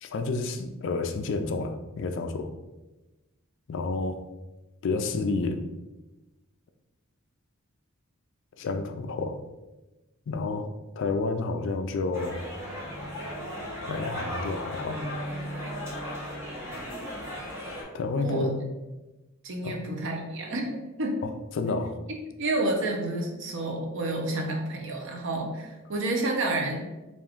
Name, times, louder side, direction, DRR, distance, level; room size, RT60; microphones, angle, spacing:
voice 1, 0.0-2.5 3.7-4.2 4.8-5.6 8.6-9.4 10.3-10.7 11.0-12.4 13.9-15.0 17.9-18.6 19.6-19.8 21.2-22.0, left 3 dB, 60° left, 7 dB, 0.3 m, -30 dB
sound 1, 12.1-17.8, equal, 10° right, 0.9 m, -36 dB
voice 2, 18.2-18.5 19.4-21.2 22.4-26.9, right 2 dB, 60° right, 1 dB, 0.7 m, -30 dB
3.4 x 2.5 x 3.6 m, 1.1 s
head